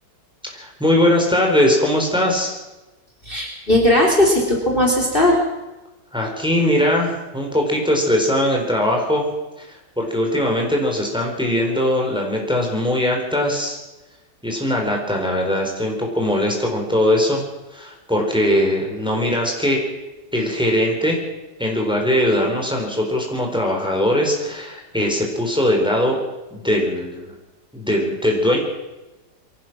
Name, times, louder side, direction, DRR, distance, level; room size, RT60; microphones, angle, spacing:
voice 1, 0.5-2.6 6.1-9.3 9.6-13.8 14.4-17.4 17.7-19.9 20.3-21.2 21.6-26.2 26.5-27.3 27.7-28.6, left 1 dB, 5° right, 0 dB, 4.5 m, -20 dB
voice 2, 3.2-5.4, left 1 dB, 30° left, 0 dB, 3.7 m, -17 dB
23.5 x 17.5 x 6.2 m, 1.1 s
omnidirectional pair, 1.8 m